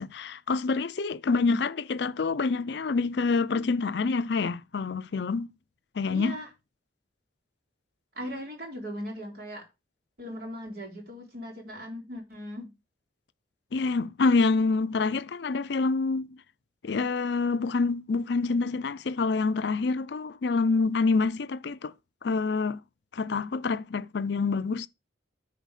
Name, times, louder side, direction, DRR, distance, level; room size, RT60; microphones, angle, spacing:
voice 1, 0.0-5.5 6.0-6.4 13.7-16.4 16.8-21.9 22.2-22.8 23.1-24.9, left 4 dB, 60° left, 0.5 m, -27 dB
voice 2, 6.1-6.5 8.2-9.7 10.2-12.7, equal, 55° right, 3.7 m, -39 dB
10.0 x 4.5 x 4.9 m
head